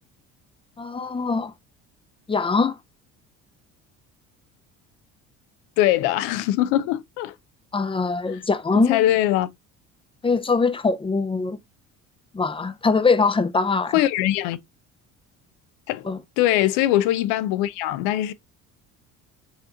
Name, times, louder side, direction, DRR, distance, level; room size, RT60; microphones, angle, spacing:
voice 1, 0.8-1.5 2.3-2.8 7.7-9.0 10.2-11.6 12.3-13.9 16.0-16.2, left 4 dB, 15° left, 0.5 m, -22 dB
voice 2, 5.8-7.3 8.8-9.5 13.9-14.6 15.9-16.1 16.4-18.3, left 14 dB, 85° left, 0.5 m, -21 dB
5.8 x 2.8 x 2.5 m
supercardioid pair, 85°, 37 cm